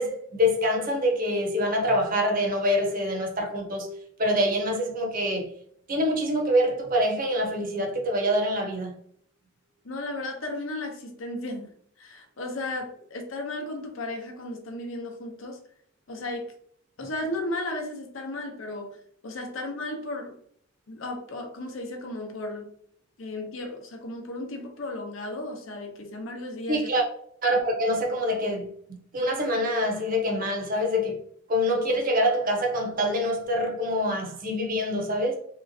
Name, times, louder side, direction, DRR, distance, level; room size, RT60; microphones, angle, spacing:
voice 1, 0.0-3.9 4.2-5.5 5.9-8.9 26.7-27.0 27.4-28.7 29.1-31.2 31.5-35.4, equal, 45° right, 0.7 m, -25 dB
voice 2, 9.8-11.7 12.0-15.6 16.1-16.5 17.0-19.0 19.2-20.3 20.9-22.7 23.2-26.9, left 2 dB, 75° left, 0.7 m, -34 dB
3.1 x 3.0 x 2.6 m
head